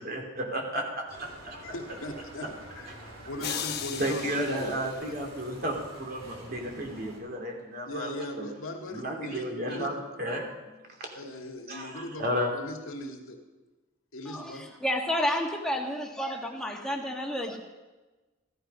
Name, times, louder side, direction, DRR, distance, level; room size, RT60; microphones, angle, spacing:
voice 1, 0.0-1.6 2.9-3.1 3.5-3.6 4.0-8.1 8.4-8.5 8.9-11.1 11.7-12.5, equal, 45° right, 1 dB, 2.8 m, -33 dB
Bicycle, 1.1-7.2, right 1 dB, 75° right, 3.7 m, -48 dB
voice 2, 1.6-2.5 2.7-2.9 3.3-4.8 7.9-9.9 11.1-13.4 14.1-14.7, left 1 dB, 85° left, 3 dB, 2.0 m, -39 dB
sound 1, 3.4-5.7, left 9 dB, 50° left, 1.1 m, -38 dB
voice 3, 14.3-17.6, equal, 5° left, 0 dB, 1.7 m, -30 dB
15.0 x 13.0 x 5.5 m, 1.2 s
head